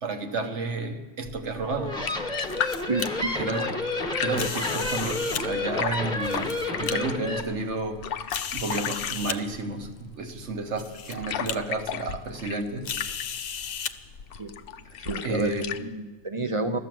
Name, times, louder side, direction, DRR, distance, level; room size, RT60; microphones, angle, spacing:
voice 1, 0.0-1.9 3.4-3.8 4.2-12.9 14.8-14.9 15.2-15.6, right 3 dB, 70° right, 6 dB, 1.4 m, -31 dB
sound 1, 1.2-15.8, left 8 dB, 60° left, 0.7 m, -36 dB
sound 2, 1.7-7.4, left 2 dB, 5° left, 1.3 m, -30 dB
sound 3, 2.2-3.1 4.3-5.4 6.1-6.9 7.6-7.7 8.3-9.4 10.3-10.4 10.8-11.1 11.5-11.6 12.8-13.9, left 8 dB, 80° left, 1.0 m, -34 dB
voice 2, 2.9-3.3 14.4-14.5 15.0-15.5 15.8-16.8, right 3 dB, 40° right, 8 dB, 0.4 m, -29 dB
13.5 x 10.0 x 7.6 m, 1.3 s
omnidirectional pair, 1.3 m